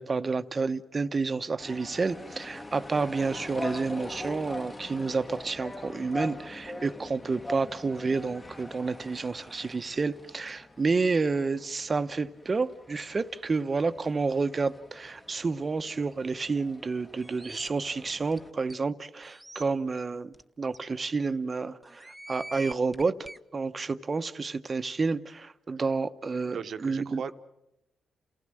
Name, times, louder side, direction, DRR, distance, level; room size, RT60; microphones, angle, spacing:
voice 1, 0.0-27.2, right 4 dB, 35° right, 0.9 m, -30 dB
sound 1, 1.6-18.5, left 1 dB, 25° left, 1.6 m, -43 dB
sound 2, 17.2-17.7 18.3-18.4 18.7-18.8 19.2-19.6 20.3-20.4 20.7-20.8 21.8-23.4, right 1 dB, 5° right, 0.8 m, -44 dB
voice 2, 26.5-27.4, right 6 dB, 65° right, 1.0 m, -37 dB
29.0 x 15.5 x 7.7 m
cardioid pair, 75°, 0 cm